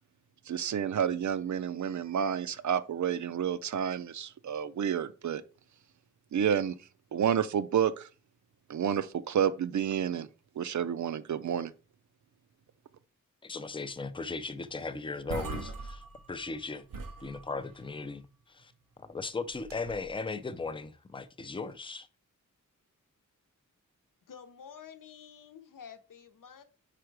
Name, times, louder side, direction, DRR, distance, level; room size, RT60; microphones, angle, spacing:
voice 1, 0.4-5.4 6.3-8.1 8.7-10.3 10.5-11.7, right 8 dB, 60° right, 0.5 m, -30 dB
voice 2, 13.4-16.0 16.3-16.9 17.2-18.7 19.0-22.1, left 4 dB, 15° left, 0.4 m, -37 dB
sound 1, 14.8-14.9 15.1-16.6 16.9-17.9 19.5-20.1, right 3 dB, 80° right, 1.0 m, -41 dB
voice 3, 24.3-26.6, left 7 dB, 75° left, 0.9 m, -50 dB
5.0 x 4.5 x 4.6 m
wide cardioid pair, 130°, 33 cm